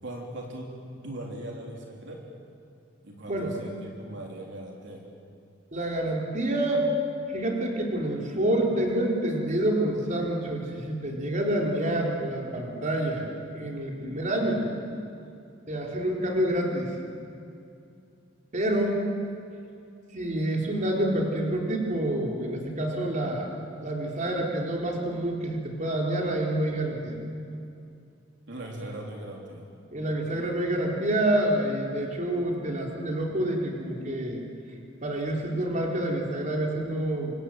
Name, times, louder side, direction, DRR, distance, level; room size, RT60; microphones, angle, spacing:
voice 1, 0.0-0.7 1.0-2.2 3.0-5.0 28.5-29.6, right 1 dB, 65° right, -1 dB, 3.7 m, -39 dB
voice 2, 5.7-6.9 7.3-13.3 13.5-14.7 15.7-16.9 18.5-19.1 20.1-23.5 23.8-27.2 29.9-34.4 35.0-37.3, right 1 dB, 40° right, -1 dB, 4.3 m, -27 dB
28.0 x 26.0 x 7.9 m, 2.5 s
head